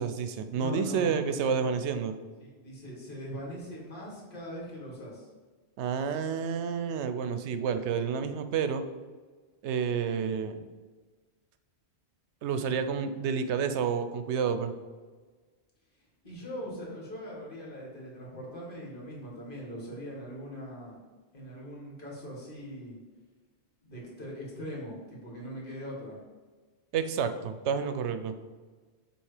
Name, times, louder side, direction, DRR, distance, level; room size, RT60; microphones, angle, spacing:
voice 1, 0.0-2.1 5.8-8.8 9.6-10.6 12.4-14.7 26.9-28.3, right 6 dB, 85° right, 9 dB, 0.9 m, -29 dB
voice 2, 0.5-1.6 2.0-2.1 2.4-5.3 16.2-21.0 21.3-23.0 23.8-26.2, equal, 50° left, -4 dB, 1.9 m, -41 dB
7.2 x 3.0 x 4.8 m, 1.4 s
omnidirectional pair, 1.1 m